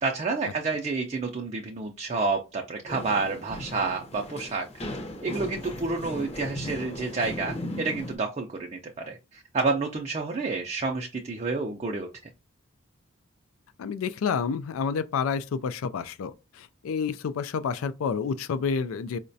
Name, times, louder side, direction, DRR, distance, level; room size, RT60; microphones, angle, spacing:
voice 1, 0.0-4.7 5.2-12.1, right 3 dB, 30° right, 0.4 m, -29 dB
sound 1, 2.9-8.1, left 1 dB, 30° left, 0.6 m, -37 dB
voice 2, 13.8-19.2, left 6 dB, 90° left, 0.3 m, -29 dB
4.7 x 2.1 x 2.6 m
head